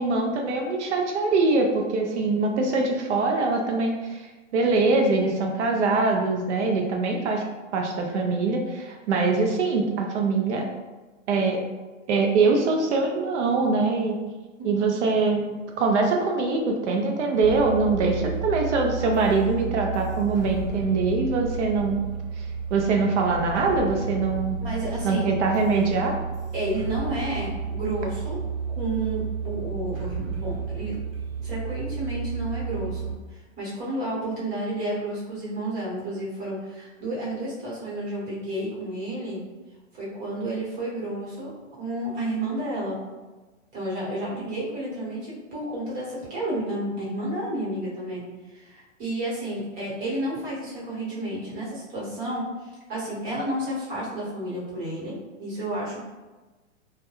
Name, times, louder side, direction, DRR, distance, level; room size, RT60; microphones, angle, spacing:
voice 1, 0.0-4.3 4.5-7.5 7.7-10.7 11.3-11.6 12.1-14.2 14.6-15.5 15.8-22.0 22.4-22.5 22.7-24.6 25.0-26.2, right 3 dB, 60° right, 2 dB, 0.5 m, -23 dB
sound 1, 17.4-33.1, right 5 dB, 85° right, 0.9 m, -32 dB
voice 2, 24.6-25.2 26.5-28.4 28.7-31.0 31.4-39.4 39.9-43.0 43.7-56.0, right 1 dB, 35° right, -7 dB, 1.1 m, -31 dB
2.2 x 2.2 x 2.9 m, 1.2 s
hypercardioid pair, 150°, 39 cm